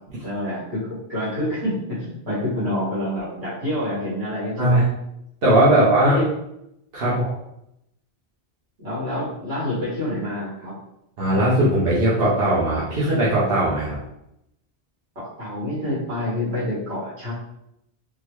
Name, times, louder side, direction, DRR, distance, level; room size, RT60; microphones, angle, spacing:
voice 1, 0.2-4.9 5.7-6.2 7.0-7.2 8.8-10.7 15.2-17.3, left 1 dB, 80° right, -9 dB, 1.9 m, -27 dB
voice 2, 5.4-6.2 6.9-7.3 11.2-14.0, right 1 dB, 65° right, -8 dB, 1.0 m, -19 dB
3.7 x 2.1 x 3.0 m, 0.81 s
omnidirectional pair, 1.1 m